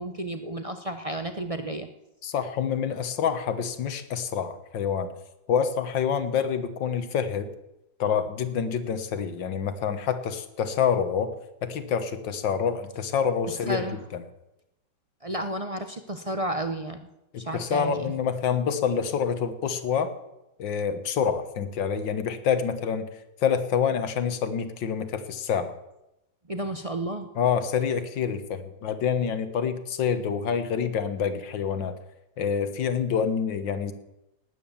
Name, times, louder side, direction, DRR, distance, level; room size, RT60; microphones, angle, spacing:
voice 1, 0.0-1.9 13.6-14.0 15.2-17.0 17.4-18.1 26.5-27.3, right 1 dB, 60° right, 7 dB, 0.3 m, -32 dB
voice 2, 2.2-5.1 5.5-7.5 8.0-11.3 11.6-13.8 14.1-14.2 17.3-20.1 20.6-23.1 23.4-25.7 27.4-32.0 32.4-33.9, left 7 dB, 70° left, 10 dB, 1.9 m, -27 dB
18.5 x 9.4 x 7.1 m, 0.91 s
omnidirectional pair, 2.1 m